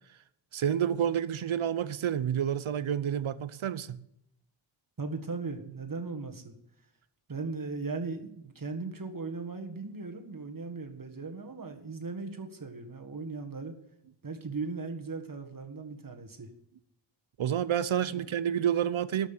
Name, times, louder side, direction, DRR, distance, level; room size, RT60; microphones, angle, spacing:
voice 1, 0.5-4.0 17.4-19.3, right 9 dB, 85° right, 0.8 m, -29 dB
voice 2, 5.0-6.5 7.3-13.8 14.2-16.5 18.1-18.3, right 4 dB, 45° right, 1.8 m, -38 dB
12.5 x 6.1 x 9.0 m
wide cardioid pair, 105°, 47 cm